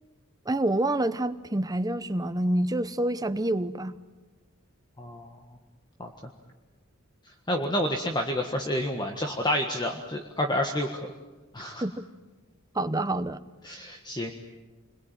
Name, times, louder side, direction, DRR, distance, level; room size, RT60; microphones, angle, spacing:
voice 1, 0.5-3.9 11.8-12.1 12.7-13.4, right 1 dB, 15° right, 11 dB, 0.9 m, -27 dB
voice 2, 5.0-5.3 6.0-6.3 7.5-11.1 11.5-11.8 13.6-14.3, left 1 dB, 20° left, 3 dB, 1.6 m, -29 dB
28.5 x 22.0 x 9.1 m, 1.2 s
head